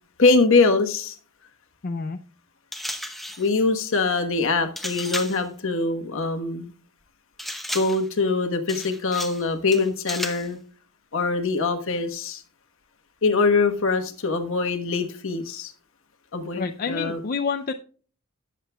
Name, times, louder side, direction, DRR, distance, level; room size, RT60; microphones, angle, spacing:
voice 1, 0.2-1.1 3.4-6.7 7.7-10.6 11.1-12.4 13.2-15.7 16.3-17.2, left 3 dB, 60° left, 6 dB, 1.2 m, -23 dB
voice 2, 1.8-2.2 16.6-17.7, left 5 dB, 40° left, 6 dB, 0.5 m, -28 dB
sound 1, 2.7-3.5 4.8-5.5 7.4-8.1 8.7-9.4 9.7-10.5, left 1 dB, ahead, 0.8 m, -33 dB
18.0 x 7.4 x 2.3 m, 0.42 s
head